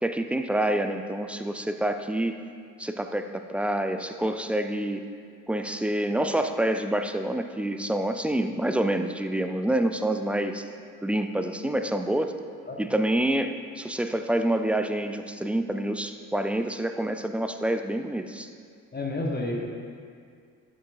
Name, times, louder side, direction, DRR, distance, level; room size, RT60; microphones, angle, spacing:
voice 1, 0.0-2.4 2.8-5.1 5.5-10.7 11.0-12.3 12.8-18.5, right 1 dB, 5° right, 7 dB, 0.3 m, -27 dB
voice 2, 18.9-19.8, left 2 dB, 25° left, -1 dB, 1.1 m, -30 dB
11.5 x 7.2 x 2.6 m, 2.2 s
figure-of-eight pair, 45°, 41 cm